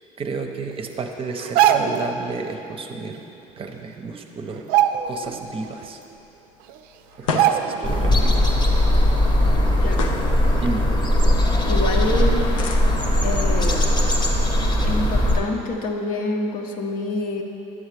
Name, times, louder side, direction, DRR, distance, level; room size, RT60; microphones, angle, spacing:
voice 1, 0.2-3.2 3.6-4.6 5.0-6.0 7.2-8.5 10.6-10.9, right 4 dB, 35° right, 4 dB, 0.7 m, -31 dB
sound 1, 1.4-2.1 3.6-3.7 4.0-4.2 4.6-5.4 5.8-5.9 6.7-6.8 7.4-8.0 8.4-8.5, right 10 dB, 65° right, 0.4 m, -20 dB
sound 2, 4.9-16.2, left 4 dB, 85° left, 0.6 m, -37 dB
sound 3, 7.8-15.4, left 1 dB, 25° left, 1.0 m, -19 dB
voice 2, 9.8-10.1 11.6-12.5 13.2-13.9 14.9-17.4, left 2 dB, 55° left, 2 dB, 0.9 m, -27 dB
9.6 x 7.2 x 3.3 m, 2.9 s
hypercardioid pair, 75°, 17 cm